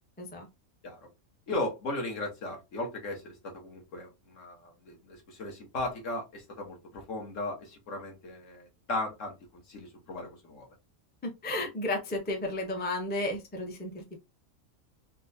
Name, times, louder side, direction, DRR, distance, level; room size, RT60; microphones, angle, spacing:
voice 1, 1.5-9.3 9.7-10.7, left 2 dB, 65° left, 1 dB, 1.5 m, -36 dB
voice 2, 11.2-14.2, left 2 dB, 15° left, 2 dB, 0.4 m, -33 dB
4.2 x 2.1 x 2.6 m, 0.23 s
omnidirectional pair, 1.4 m